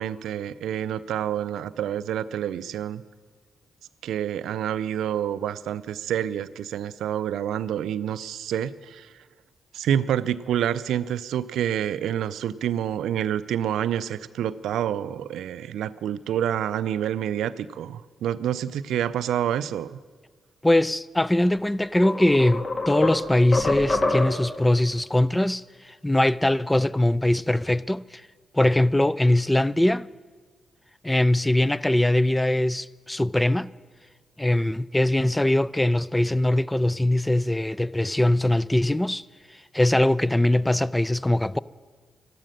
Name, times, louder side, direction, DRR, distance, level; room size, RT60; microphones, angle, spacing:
voice 1, 0.0-3.0 4.0-9.1 9.7-20.0, right 10 dB, 80° right, 0.4 m, -28 dB
voice 2, 20.6-28.2 28.5-30.1 31.0-33.7 34.4-39.2 39.7-41.6, left 1 dB, 15° left, 0.4 m, -22 dB
sound 1, 21.4-21.5 22.0-24.6, left 2 dB, 50° left, 2.0 m, -26 dB
13.0 x 12.0 x 6.5 m
hypercardioid pair, 45°, 0 cm